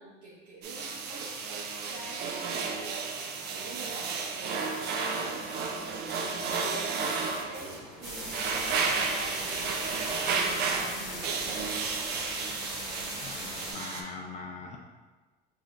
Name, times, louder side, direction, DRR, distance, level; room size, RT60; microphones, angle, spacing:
voice 1, 0.0-11.6, right 2 dB, 80° right, -8 dB, 0.9 m, -46 dB
sound 1, 0.6-14.0, right 4 dB, 50° right, 0.5 m, -33 dB
sound 2, 5.2-10.3, left 3 dB, 70° left, 0.9 m, -50 dB
sound 3, 8.0-13.7, equal, ahead, 1.4 m, -39 dB
voice 2, 13.1-14.8, left 4 dB, 35° left, 0 dB, 0.5 m, -42 dB
4.9 x 2.8 x 2.5 m, 1.3 s
supercardioid pair, 115°, 21 cm